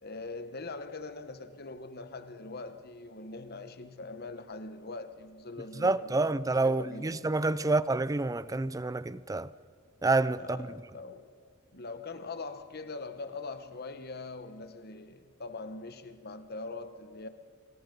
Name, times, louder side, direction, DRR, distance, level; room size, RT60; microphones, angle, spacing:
voice 1, 0.0-6.3 6.6-7.1 10.4-11.3 11.7-17.3, left 3 dB, 50° left, 1.3 m, -42 dB
voice 2, 5.8-9.5 10.0-10.7, right 3 dB, 15° right, 0.5 m, -28 dB
25.5 x 22.5 x 5.4 m
head